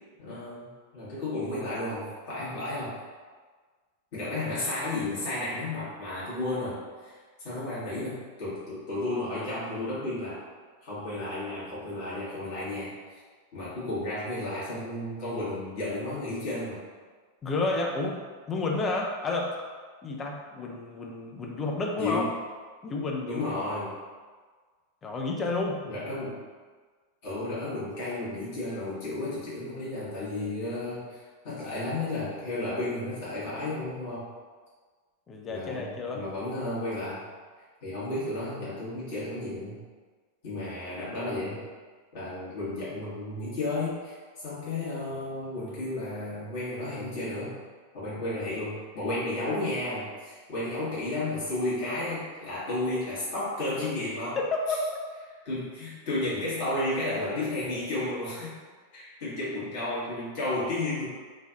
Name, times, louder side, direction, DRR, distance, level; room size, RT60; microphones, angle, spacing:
voice 1, 0.2-3.0 4.1-7.2 7.4-10.4 10.8-13.2 13.5-16.8 21.9-22.3 23.3-23.9 25.8-26.4 27.2-34.3 35.5-37.2 37.8-39.8 40.4-41.6 42.1-47.6 47.9-54.4 55.4-58.5 58.9-61.1, left 2 dB, 50° left, -10 dB, 1.3 m, -33 dB
voice 2, 17.4-18.2 18.5-19.6 20.0-22.3 22.8-23.5 25.0-25.8 35.3-36.2 54.4-54.8, left 3 dB, 25° left, 1 dB, 0.4 m, -30 dB
3.3 x 2.4 x 2.4 m, 1.5 s
figure-of-eight pair, 90°, 0 cm